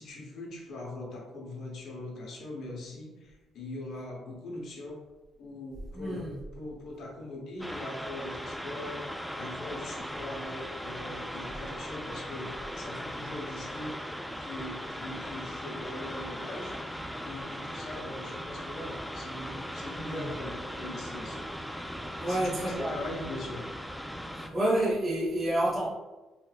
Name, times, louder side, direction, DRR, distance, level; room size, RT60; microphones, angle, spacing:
voice 1, 0.0-5.0 5.4-21.5 22.3-23.6, left 1 dB, 65° left, -1 dB, 1.0 m, -41 dB
voice 2, 5.9-6.4 20.0-20.3 22.0-23.0 24.3-25.9, right 1 dB, 25° right, -7 dB, 0.8 m, -29 dB
sound 1, 7.6-24.5, equal, ahead, 0.3 m, -39 dB
3.3 x 3.1 x 2.4 m, 1.2 s
cardioid pair, 80°, 0 cm